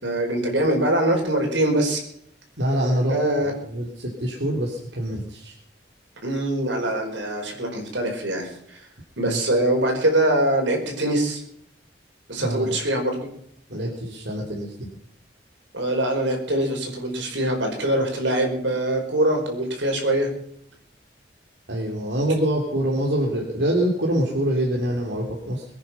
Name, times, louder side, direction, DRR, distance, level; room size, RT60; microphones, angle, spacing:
voice 1, 0.0-2.1 3.1-3.5 6.2-8.9 9.2-11.4 12.3-13.3 15.7-20.3, right 1 dB, 90° right, 3 dB, 5.1 m, -23 dB
voice 2, 2.6-3.2 3.4-5.5 9.2-9.4 12.4-12.6 13.7-14.9 21.7-25.6, right 1 dB, 70° right, -2 dB, 3.2 m, -25 dB
23.0 x 9.8 x 5.8 m, 0.69 s
head